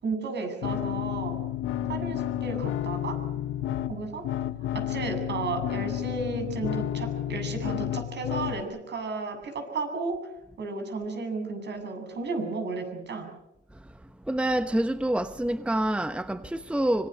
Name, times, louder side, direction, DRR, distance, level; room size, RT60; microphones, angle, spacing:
voice 1, 0.0-1.4 1.9-3.2 3.9-4.2 4.7-10.2 10.6-13.3, right 4 dB, 60° right, 7.9 m, -33 dB
sound 1, 0.6-8.6, left 12 dB, 85° left, 1.6 m, -31 dB
voice 2, 14.3-17.1, right 1 dB, 5° right, 1.0 m, -27 dB
25.5 x 23.0 x 6.8 m
cardioid pair, 90°, 20 cm